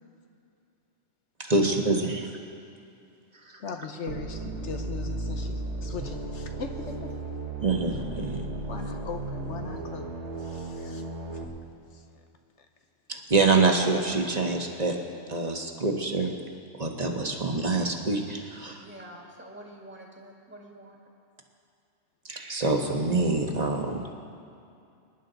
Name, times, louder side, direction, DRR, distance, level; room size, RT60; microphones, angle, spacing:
voice 1, 1.5-2.3 3.5-3.6 7.6-8.5 13.1-15.0 15.3-16.3 16.8-18.8 22.2-24.0, right 3 dB, 35° right, 2 dB, 1.3 m, -26 dB
voice 2, 3.6-7.1 8.7-11.0 11.3-11.4 11.9-12.0 12.6-12.7, left 5 dB, 75° left, 5 dB, 1.2 m, -39 dB
sound 1, 4.1-11.4, right 2 dB, 70° right, 1.7 m, -35 dB
voice 3, 18.8-21.0, right 1 dB, 10° right, -1 dB, 1.9 m, -47 dB
24.5 x 11.0 x 4.0 m, 2.5 s
omnidirectional pair, 1.2 m